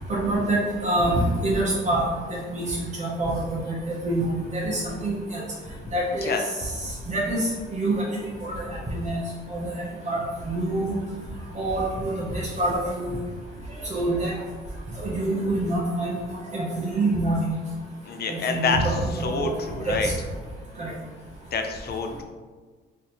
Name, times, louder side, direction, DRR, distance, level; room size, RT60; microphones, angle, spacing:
voice 1, 0.1-1.1 1.4-2.7 3.0-5.4 5.9-6.3 7.1-9.2 9.5-11.0 11.6-13.2 13.9-14.3 15.0-16.2 16.5-17.5 18.3-19.5 19.9-20.1 20.8-20.9, right 1 dB, 35° right, -4 dB, 0.8 m, -26 dB
voice 2, 18.1-20.1 21.5-22.2, left 4 dB, 55° left, 5 dB, 0.5 m, -27 dB
3.1 x 2.7 x 4.2 m, 1.4 s
cardioid pair, 90°, 20 cm